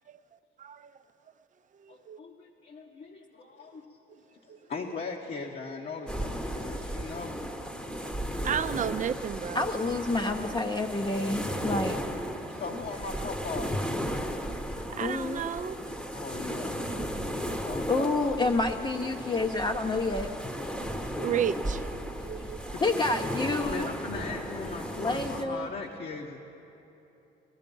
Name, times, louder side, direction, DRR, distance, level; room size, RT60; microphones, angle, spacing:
voice 1, 0.6-1.0 1.8-2.2 4.5-4.6 8.0-8.1 8.4-9.7 14.9-15.8 21.1-22.6, right 8 dB, 40° right, 11 dB, 0.5 m, -33 dB
voice 2, 1.9-3.9 4.4-7.5 12.4-13.8 16.1-16.8 17.5-18.5 22.4-23.1 23.6-26.4, left 4 dB, 50° left, 0 dB, 1.0 m, -39 dB
sound 1, 6.1-25.5, equal, 5° left, 1.0 m, -35 dB
voice 3, 9.5-12.0 15.0-15.4 17.9-20.3 22.8-23.9 25.0-25.7, left 2 dB, 25° left, 3 dB, 0.7 m, -28 dB
16.5 x 14.0 x 5.4 m, 3.0 s
cardioid pair, 90°, 20 cm